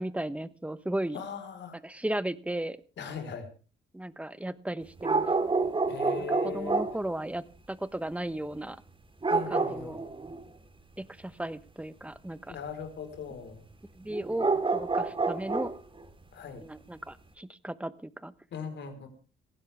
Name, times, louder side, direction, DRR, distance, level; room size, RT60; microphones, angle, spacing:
voice 1, 0.0-1.2 1.8-2.8 3.9-5.2 6.3-8.8 9.5-10.0 11.0-12.6 14.0-14.5 14.7-15.7 16.6-18.3, right 1 dB, 5° right, 14 dB, 1.1 m, -35 dB
voice 2, 1.1-1.8 3.0-3.5 5.9-6.8 9.3-10.0 12.5-13.6 16.3-16.6 18.5-19.1, left 6 dB, 65° left, 8 dB, 4.5 m, -39 dB
sound 1, 5.0-7.0 9.2-10.5 14.1-15.7 16.0-16.1, right 3 dB, 25° right, 3.8 m, -28 dB
18.5 x 16.0 x 3.5 m, 0.37 s
cardioid pair, 90°, 20 cm